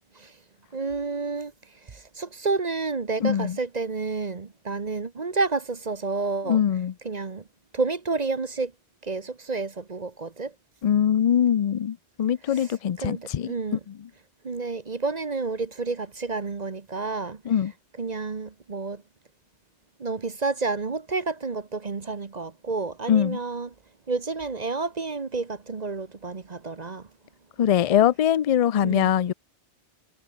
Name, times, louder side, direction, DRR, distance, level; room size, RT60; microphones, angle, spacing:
voice 1, 0.7-1.5 2.2-6.6 7.0-7.4 7.7-8.7 9.0-10.5 13.0-13.8 14.4-17.4 18.0-19.0 20.0-23.7 24.1-27.0 28.8-29.1, right 3 dB, 40° right, 1.2 m, -30 dB
voice 2, 3.2-3.6 6.5-6.9 10.8-13.5 13.9-14.1 17.4-17.7 23.1-23.4 27.6-29.3, left 9 dB, 45° left, 0.5 m, -22 dB
omnidirectional pair, 1.0 m